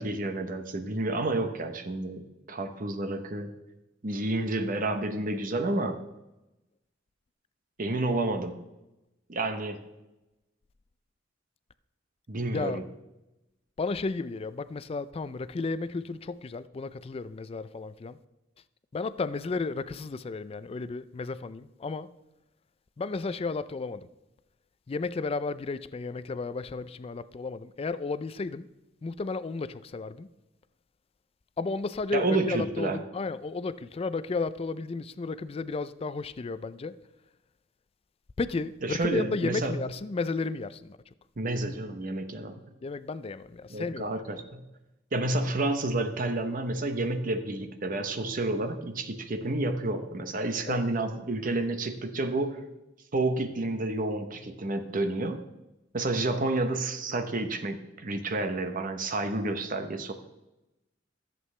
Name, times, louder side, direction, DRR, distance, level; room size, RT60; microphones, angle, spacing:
voice 1, 0.0-3.5 4.0-6.0 7.8-8.6 9.3-9.8 12.3-12.8 32.1-33.0 38.8-39.8 41.4-42.6 43.7-44.6 45.1-52.6 53.1-55.4 55.9-60.1, right 2 dB, 45° right, 0.8 m, -30 dB
voice 2, 13.8-18.2 18.9-22.1 23.0-24.1 24.9-28.7 29.0-30.3 31.6-36.9 38.4-41.0 42.8-44.1 50.7-50.9, left 3 dB, 30° left, 0.4 m, -33 dB
14.0 x 7.7 x 3.2 m
head